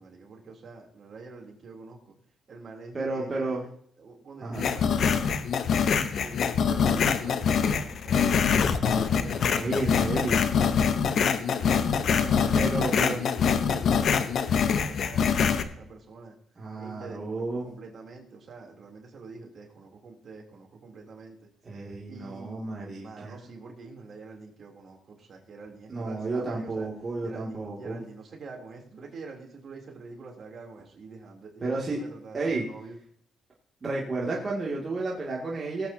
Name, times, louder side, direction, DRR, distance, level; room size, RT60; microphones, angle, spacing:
voice 1, 0.0-2.1 2.5-3.7 4.0-5.2 6.1-8.4 8.9-10.3 10.6-11.9 12.2-16.4 16.8-21.5 22.1-22.7 23.0-26.9 27.2-32.9, right 4 dB, 50° right, 0 dB, 3.2 m, -45 dB
voice 2, 2.9-3.6 4.4-4.6 9.6-10.4 12.5-13.2 16.6-17.7 21.6-23.4 25.9-28.0 31.6-32.0 32.3-32.7 33.8-35.9, right 3 dB, 35° right, -4 dB, 2.4 m, -31 dB
sound 1, 4.6-15.6, left 6 dB, 60° left, 0.9 m, -24 dB
19.5 x 8.4 x 2.8 m, 0.63 s
cardioid pair, 90°, 0 cm